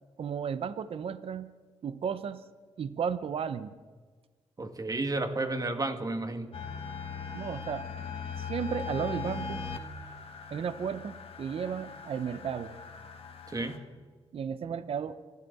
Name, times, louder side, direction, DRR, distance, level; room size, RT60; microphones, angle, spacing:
voice 1, 0.2-1.5 1.8-2.4 2.8-3.7 7.3-7.9 8.4-9.6 10.5-12.8 14.3-15.1, right 7 dB, 60° right, 13 dB, 0.8 m, -34 dB
voice 2, 4.6-6.5 13.5-13.8, right 2 dB, 35° right, 7 dB, 2.2 m, -32 dB
sound 1, 6.5-13.8, left 6 dB, 60° left, 1.9 m, -40 dB
27.0 x 12.5 x 4.2 m, 1.4 s
cardioid pair, 65°, 11 cm